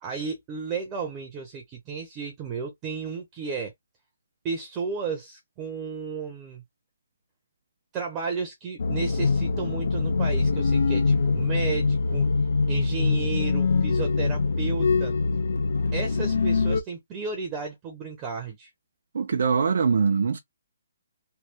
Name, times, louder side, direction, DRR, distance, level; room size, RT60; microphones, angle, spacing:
voice 1, 0.0-3.7 4.4-6.6 7.9-12.3 12.7-15.1 15.9-18.7, right 5 dB, 15° right, 0.7 m, -33 dB
sound 1, 8.8-16.8, left 4 dB, 70° left, 0.7 m, -24 dB
voice 2, 19.1-20.4, right 5 dB, 65° right, 0.6 m, -22 dB
3.3 x 2.2 x 2.9 m
hypercardioid pair, 170°, 0 cm